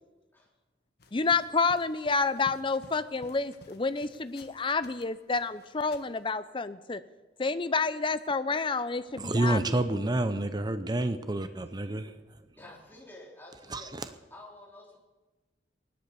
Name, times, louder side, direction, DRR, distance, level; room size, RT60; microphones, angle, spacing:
sound 1, 1.0-5.0 5.3-6.2, left 2 dB, 55° left, 1.4 m, -54 dB
voice 1, 1.1-7.0 7.4-9.9, left 4 dB, 25° left, 13 dB, 0.6 m, -29 dB
voice 2, 9.2-12.1 13.7-14.1, right 2 dB, 20° right, 10 dB, 0.6 m, -29 dB
voice 3, 12.6-15.0, left 1 dB, 10° left, -4 dB, 3.5 m, -50 dB
17.5 x 12.0 x 6.9 m, 1.2 s
head